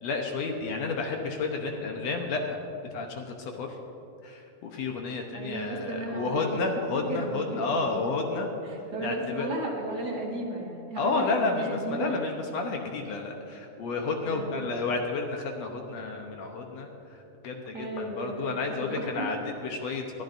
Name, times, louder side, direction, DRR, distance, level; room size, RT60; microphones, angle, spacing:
voice 1, 0.0-2.6 2.9-3.8 4.2-8.5 9.0-9.5 11.0-16.9 17.4-19.4 19.6-20.0, left 3 dB, 70° left, 2 dB, 2.0 m, -31 dB
voice 2, 5.3-6.6 7.1-8.2 8.6-12.2 14.3-14.7 17.7-19.3, right 2 dB, 40° right, -2 dB, 2.0 m, -35 dB
21.5 x 12.0 x 2.7 m, 2.8 s
omnidirectional pair, 3.5 m